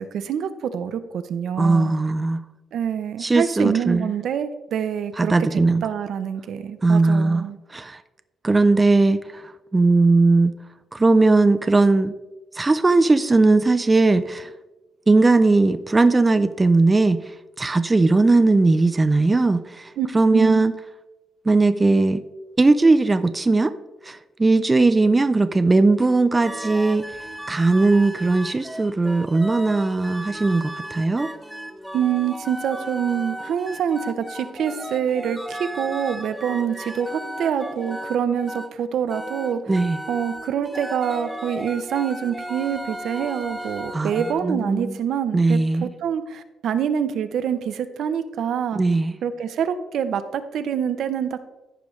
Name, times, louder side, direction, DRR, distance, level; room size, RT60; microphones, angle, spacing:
voice 1, 0.0-1.9 2.7-7.6 20.0-20.6 31.9-39.6 40.1-48.8 49.2-51.5, right 8 dB, 70° right, 0.6 m, -26 dB
voice 2, 1.6-2.4 3.2-4.1 5.2-5.8 6.8-8.0 8.4-10.5 10.9-12.1 12.5-14.5 15.1-17.3 17.6-19.9 20.1-20.7 21.5-22.2 22.6-23.7 24.0-27.0 27.5-31.3 39.7-40.0 43.9-44.1 44.4-45.0 45.3-45.9 48.8-49.2, right 3 dB, 20° right, 0.4 m, -18 dB
sound 1, 26.4-38.7 39.1-44.3, right 1 dB, ahead, 0.9 m, -35 dB
14.5 x 5.0 x 3.2 m
cardioid pair, 90°, 0 cm